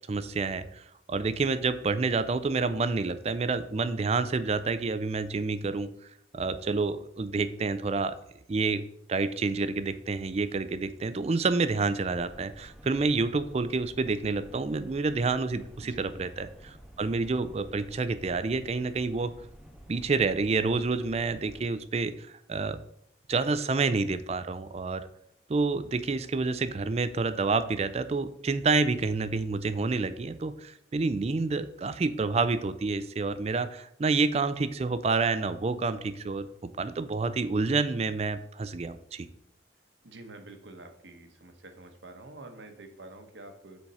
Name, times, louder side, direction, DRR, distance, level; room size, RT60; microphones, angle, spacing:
voice 1, 0.1-5.9 6.3-8.2 8.5-8.8 9.1-19.3 19.9-22.8 23.3-25.0 25.5-36.5 36.8-39.3, right 4 dB, 35° right, 13 dB, 0.4 m, -28 dB
sound 1, 12.1-21.6, equal, ahead, 0.9 m, -51 dB
voice 2, 40.0-43.8, right 2 dB, 70° right, 6 dB, 1.1 m, -47 dB
7.0 x 4.5 x 5.4 m, 0.74 s
head